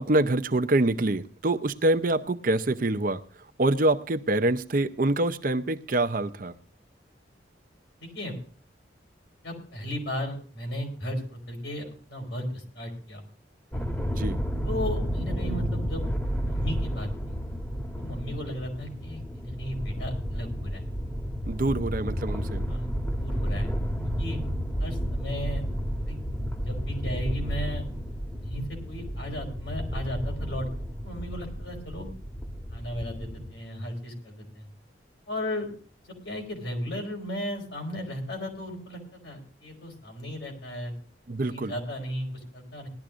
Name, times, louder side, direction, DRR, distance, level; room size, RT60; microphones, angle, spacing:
voice 1, 0.0-3.2 3.6-6.5 14.1-14.4 21.5-22.7 41.3-41.7, right 2 dB, 45° right, 0.7 m, -25 dB
voice 2, 8.0-8.4 9.4-13.2 14.6-16.1 16.4-17.4 18.0-20.8 22.7-22.9 23.2-23.7 24.2-24.4 24.8-25.6 26.0-26.2 26.6-27.8 28.4-30.7 31.0-32.1 32.7-34.7 35.3-35.7 36.1-40.9 41.5-42.9, left 1 dB, 75° left, 4.8 m, -35 dB
sound 1, 13.7-33.5, equal, 10° left, 1.3 m, -31 dB
19.5 x 12.5 x 2.5 m
head